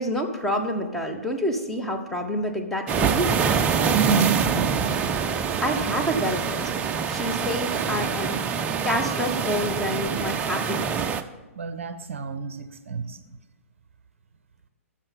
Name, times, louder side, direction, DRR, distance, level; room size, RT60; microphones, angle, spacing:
voice 1, 0.0-3.4 5.6-6.7 7.1-10.9, equal, ahead, 1 dB, 1.0 m, -28 dB
sound 1, 2.9-11.2, right 6 dB, 15° right, 0.4 m, -25 dB
voice 2, 3.9-5.1 11.5-13.4, right 6 dB, 55° right, 11 dB, 0.6 m, -29 dB
13.0 x 6.8 x 5.3 m, 1.2 s
figure-of-eight pair, 120°, 8 cm